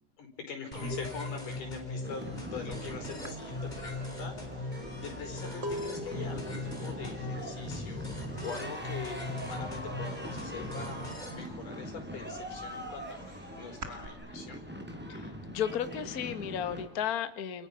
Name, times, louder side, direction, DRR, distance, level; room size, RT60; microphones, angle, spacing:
voice 1, 0.2-14.6, left 5 dB, 85° left, 4 dB, 6.3 m, -43 dB
sound 1, 0.7-11.4, left 2 dB, 15° left, 4.5 m, -39 dB
sound 2, 2.0-16.9, equal, 5° right, 4.2 m, -42 dB
sound 3, 2.7-2.9 3.2-8.9 9.2-9.7 10.0-11.1 11.5-14.1, equal, 30° right, 1.3 m, -43 dB
voice 2, 15.5-17.7, left 9 dB, 40° left, 9 dB, 1.3 m, -33 dB
29.5 x 29.0 x 5.8 m, 0.86 s
omnidirectional pair, 3.6 m